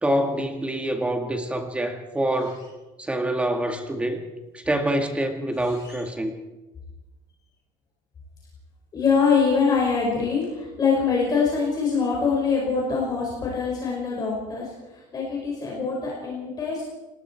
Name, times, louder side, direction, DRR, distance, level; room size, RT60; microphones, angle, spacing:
voice 1, 0.0-2.6 3.0-4.2 4.5-6.3, right 1 dB, 10° right, 5 dB, 2.0 m, -26 dB
voice 2, 5.6-6.0 8.9-16.8, left 5 dB, 25° left, -3 dB, 5.4 m, -24 dB
29.5 x 19.5 x 4.6 m, 1.1 s
cardioid pair, 175°, 15 cm